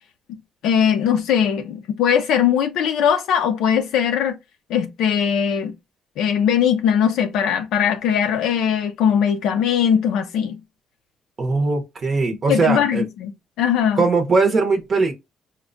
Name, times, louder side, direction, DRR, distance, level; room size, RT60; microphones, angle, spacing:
voice 1, 0.6-4.3 4.7-5.7 6.2-10.6 12.5-13.3 13.6-14.0, left 8 dB, 85° left, 0.5 m, -20 dB
voice 2, 11.4-13.0 14.0-15.1, right 4 dB, 35° right, 0.6 m, -20 dB
4.3 x 2.1 x 2.4 m
cardioid pair, 155°, 0 cm